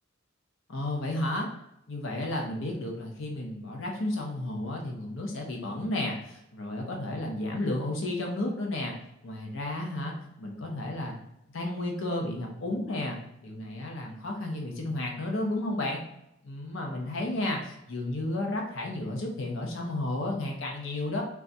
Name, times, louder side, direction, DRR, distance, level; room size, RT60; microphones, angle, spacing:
voice 1, 0.7-1.5 1.9-8.9 9.2-11.2 11.5-16.0 16.4-21.2, left 1 dB, 70° left, 1 dB, 0.7 m, -32 dB
3.5 x 2.3 x 4.0 m, 0.82 s
head